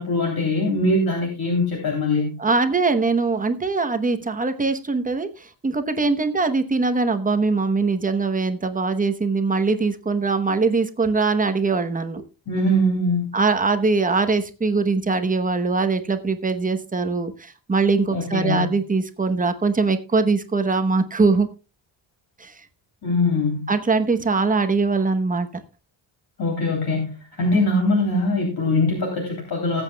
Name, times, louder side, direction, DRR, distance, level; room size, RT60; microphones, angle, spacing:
voice 1, 0.0-2.3 12.5-13.3 18.1-18.7 23.0-23.7 26.4-29.8, left 2 dB, 50° left, 0 dB, 3.2 m, -22 dB
voice 2, 2.4-5.3 5.6-12.2 13.3-21.5 22.4-22.5 23.7-25.5, right 4 dB, 20° right, 8 dB, 0.9 m, -22 dB
20.0 x 8.1 x 2.3 m, 0.32 s
wide cardioid pair, 160°, 46 cm